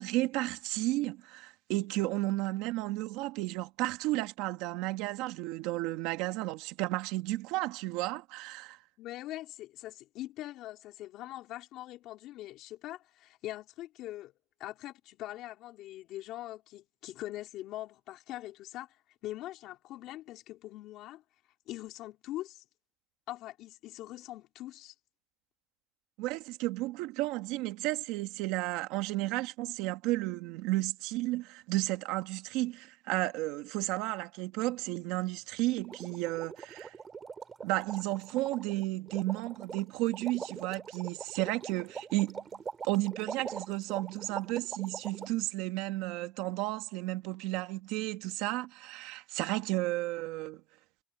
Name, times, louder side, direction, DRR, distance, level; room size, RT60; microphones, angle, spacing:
voice 1, 0.0-8.8 26.2-36.9 37.6-42.4 42.8-50.6, right 18 dB, 85° right, 1.7 m, -33 dB
voice 2, 9.0-14.3 14.6-19.0 19.2-21.2 21.7-22.6 23.3-24.9, left 15 dB, 65° left, 3.9 m, -42 dB
sound 1, 35.8-45.3, right 5 dB, 25° right, 2.2 m, -43 dB
cardioid pair, 135°, 0 cm